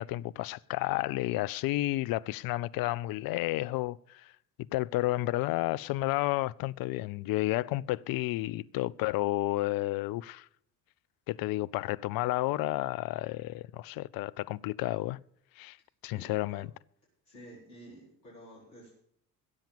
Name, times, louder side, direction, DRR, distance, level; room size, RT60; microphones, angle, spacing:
voice 1, 0.0-4.3 4.7-10.5 11.3-15.2 15.6-15.8 16.0-16.7, left 17 dB, 45° left, 0.5 m, -31 dB
voice 2, 16.1-16.6 17.2-19.0, equal, 85° left, 4.4 m, -51 dB
15.5 x 7.3 x 7.2 m
figure-of-eight pair, 55°, 50 cm